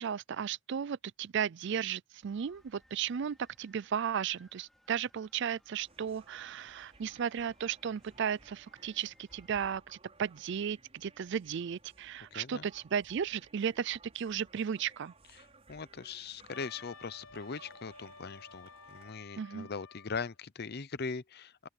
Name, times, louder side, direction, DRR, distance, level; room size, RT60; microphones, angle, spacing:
voice 1, 0.0-15.1 19.4-19.7, right 8 dB, 60° right, 0.4 m, -35 dB
sound 1, 2.2-9.6, equal, ahead, 5.0 m, -67 dB
sound 2, 5.8-19.1, right 3 dB, 30° right, 5.6 m, -60 dB
voice 2, 12.3-12.7 15.7-21.7, left 5 dB, 50° left, 0.7 m, -40 dB
Wind instrument woodwind instrument, 16.5-20.3, left 5 dB, 70° left, 1.1 m, -53 dB
open air
head